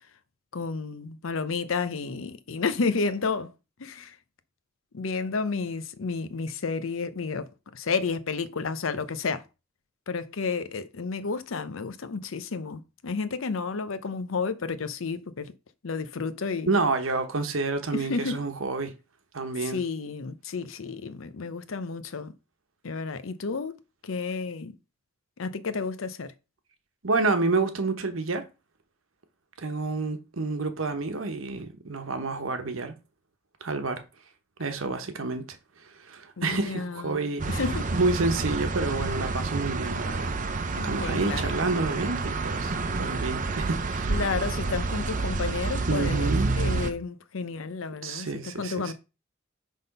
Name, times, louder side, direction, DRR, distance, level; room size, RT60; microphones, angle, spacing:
voice 1, 0.5-3.5 3.8-4.2 4.9-7.5 7.7-9.4 10.1-15.5 15.8-16.7 17.9-18.4 19.6-22.3 22.8-23.7 24.0-24.7 25.4-26.3 36.4-37.9 40.8-41.6 44.1-48.9, left 4 dB, 85° left, 0.7 m, -31 dB
voice 2, 16.7-18.9 19.3-19.8 27.0-28.4 29.6-32.9 33.6-34.0 34.6-35.6 36.0-37.6 37.9-40.3 40.8-44.2 45.9-46.5 48.0-48.9, right 3 dB, 85° right, 1.0 m, -29 dB
sound 1, 37.4-46.9, right 3 dB, 40° right, 0.7 m, -29 dB
5.9 x 3.7 x 5.3 m
head